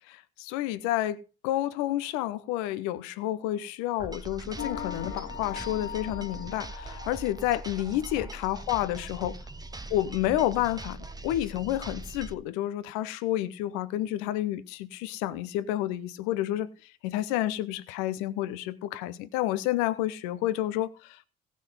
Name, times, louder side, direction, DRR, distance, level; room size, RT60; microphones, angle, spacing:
voice 1, 0.4-1.2 1.4-9.4 9.9-21.2, left 14 dB, 70° left, 0.9 m, -30 dB
sound 1, 4.0-12.3, right 2 dB, 10° right, 1.0 m, -41 dB
sound 2, 4.6-7.9, left 9 dB, 55° left, 2.3 m, -40 dB
16.5 x 6.2 x 5.6 m
figure-of-eight pair, 45°, 31 cm